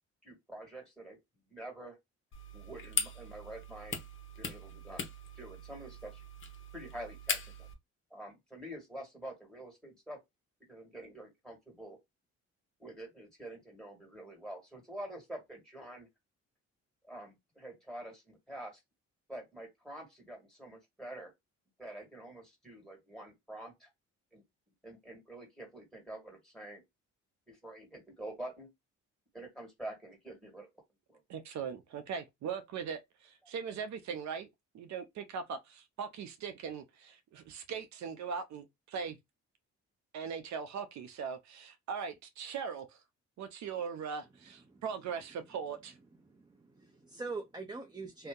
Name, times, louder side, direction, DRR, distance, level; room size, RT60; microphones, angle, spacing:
voice 1, 0.2-1.2 1.5-2.0 2.5-4.0 4.4-5.0 5.3-6.2 6.7-7.7 8.1-10.2 10.7-12.0 12.8-16.1 17.0-18.8 19.3-21.3 21.8-23.9 24.3-24.4 24.8-26.8 27.5-28.7 29.3-30.7 31.1-31.2, right 1 dB, ahead, 1.7 m, -47 dB
sound 1, 2.3-7.7, left 4 dB, 40° left, 0.9 m, -40 dB
voice 2, 31.3-34.5 34.7-39.2 40.1-43.0 43.4-46.0, right 6 dB, 65° right, 0.6 m, -40 dB
voice 3, 46.2-48.3, right 3 dB, 15° right, 0.6 m, -43 dB
2.6 x 2.2 x 3.7 m
cardioid pair, 90°, 30 cm